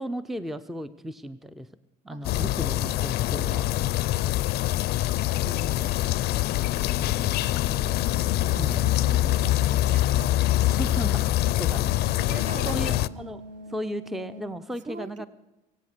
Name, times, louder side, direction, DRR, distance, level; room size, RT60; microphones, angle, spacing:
voice 1, 0.0-1.7 2.0-3.7 5.4-6.0 6.9-7.8 8.6-8.9 10.7-11.8 12.7-13.4 13.7-15.3, right 1 dB, ahead, 13 dB, 0.5 m, -36 dB
voice 2, 2.1-2.6 3.5-3.6 4.4-5.2 6.6-10.3 12.0-13.0 14.9-15.3, right 4 dB, 45° right, 13 dB, 1.0 m, -44 dB
sound 1, 2.2-13.1, left 15 dB, 75° left, 0.5 m, -24 dB
sound 2, 7.7-14.4, left 1 dB, 85° right, 3.7 m, -43 dB
23.0 x 8.5 x 6.6 m, 1.0 s
cardioid pair, 110°, 17 cm